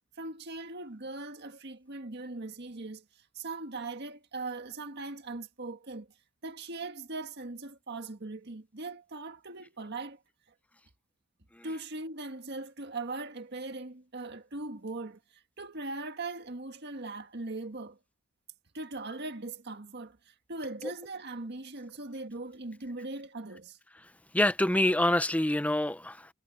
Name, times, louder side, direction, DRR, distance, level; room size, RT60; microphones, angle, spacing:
voice 1, 0.2-3.0 3.4-6.1 6.4-10.2 11.6-18.0 18.7-23.8, right 2 dB, 55° right, 1.8 m, -40 dB
voice 2, 24.3-26.3, left 1 dB, 5° left, 0.5 m, -26 dB
head